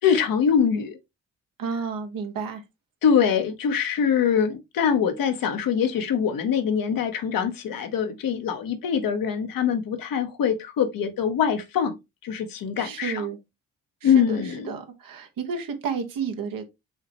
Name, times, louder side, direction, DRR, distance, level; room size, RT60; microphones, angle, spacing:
voice 1, 0.0-1.0 3.0-12.0 12.2-13.3 14.0-14.7, left 7 dB, 70° left, 1.0 m, -23 dB
voice 2, 1.6-2.6 12.8-13.4 14.0-16.6, right 6 dB, 70° right, 1.1 m, -31 dB
5.6 x 3.0 x 2.9 m
supercardioid pair, 50°, 35 cm